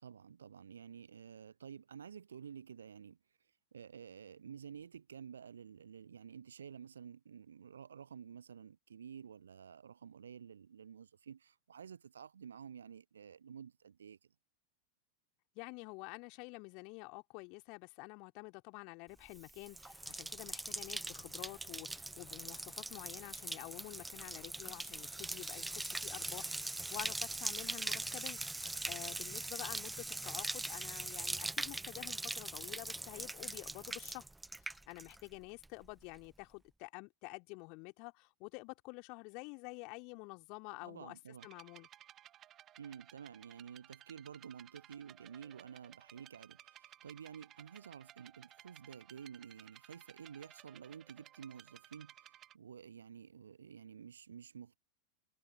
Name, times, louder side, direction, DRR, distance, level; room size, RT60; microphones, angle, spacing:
voice 1, 0.0-3.2 3.7-14.2 40.8-41.5 42.8-54.8, right 7 dB, 70° right, 0.6 m, -51 dB
voice 2, 15.5-34.3 34.6-41.2 41.4-41.9, left 32 dB, 45° left, 2.9 m, -49 dB
Bathtub (filling or washing), 19.3-35.4 35.6-36.2, right 2 dB, 5° right, 0.8 m, -41 dB
sound 1, 41.4-52.5, right 12 dB, 30° right, 1.4 m, -59 dB
figure-of-eight pair, 90°, 0 cm